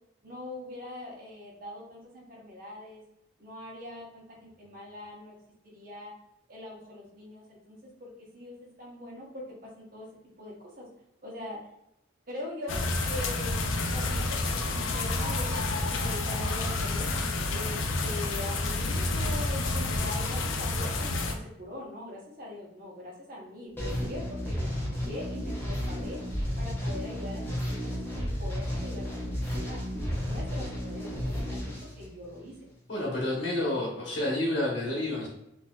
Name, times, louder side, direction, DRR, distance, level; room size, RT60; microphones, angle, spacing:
voice 1, 0.2-3.0 3.4-5.4 5.6-6.1 6.5-10.1 10.4-10.9 11.2-11.6 12.3-13.6 13.9-17.1 17.5-26.2 26.6-29.8 30.2-32.5, left 1 dB, 45° right, -3 dB, 0.9 m, -42 dB
sound 1, 12.7-21.3, left 2 dB, 80° left, 0.4 m, -29 dB
sound 2, 23.8-32.6, equal, 10° left, 0.8 m, -33 dB
voice 2, 32.9-35.3, left 1 dB, 65° left, -4 dB, 0.9 m, -29 dB
4.1 x 2.5 x 2.3 m, 0.82 s
head